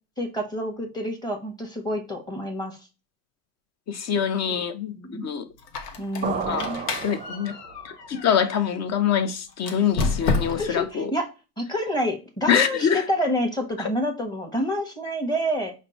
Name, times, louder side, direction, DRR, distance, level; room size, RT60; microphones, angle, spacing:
voice 1, 0.2-2.8 4.5-4.6 4.9-5.3 6.0-6.8 10.6-11.2 11.6-15.7, equal, 10° left, 3 dB, 1.2 m, -28 dB
voice 2, 3.9-5.5 6.2-6.7 7.0-7.5 7.8-11.1 12.5-13.0, left 8 dB, 35° left, 9 dB, 0.7 m, -25 dB
Squeak, 5.6-8.8 9.6-10.9, left 4 dB, 85° left, 0.9 m, -30 dB
sound 1, 6.2-7.9, right 6 dB, 20° right, 0.6 m, -32 dB
5.1 x 2.1 x 4.0 m, 0.31 s
hypercardioid pair, 85°, 47 cm